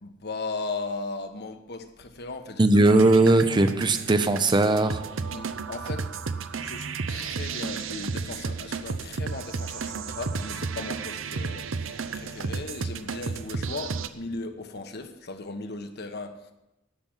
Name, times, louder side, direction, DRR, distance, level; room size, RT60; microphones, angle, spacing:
voice 1, 0.0-3.0 5.2-6.1 6.5-16.5, left 3 dB, 55° left, 7 dB, 1.2 m, -37 dB
voice 2, 2.6-5.0, right 2 dB, 25° right, 9 dB, 0.6 m, -19 dB
sound 1, 2.8-14.1, right 5 dB, 75° right, 0.7 m, -33 dB
12.5 x 6.1 x 8.9 m, 0.94 s
head